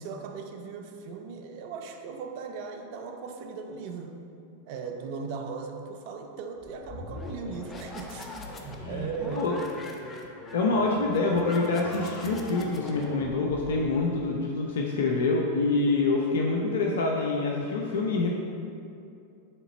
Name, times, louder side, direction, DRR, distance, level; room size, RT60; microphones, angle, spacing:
voice 1, 0.0-4.3 4.6-8.3 8.6-9.7, right 5 dB, 55° right, 4 dB, 0.7 m, -38 dB
sound 1, 6.6-14.3, left 2 dB, 25° left, 0.8 m, -41 dB
voice 2, 10.5-18.3, left 3 dB, 70° left, 0 dB, 0.7 m, -26 dB
9.0 x 3.9 x 4.2 m, 2.6 s
hypercardioid pair, 95°, 0 cm